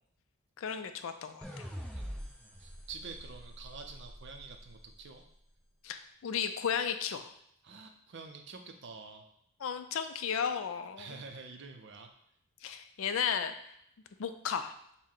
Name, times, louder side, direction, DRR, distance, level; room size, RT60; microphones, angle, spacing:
voice 1, 0.6-1.4 5.8-7.3 9.6-11.1 12.6-13.5 14.2-14.7, left 7 dB, 65° left, 9 dB, 0.4 m, -34 dB
sound 1, 1.4-4.7, equal, 5° left, 0.5 m, -44 dB
voice 2, 2.6-5.2 7.6-9.3 11.0-12.1, right 4 dB, 50° right, 5 dB, 0.5 m, -47 dB
6.2 x 2.1 x 3.7 m, 0.73 s
head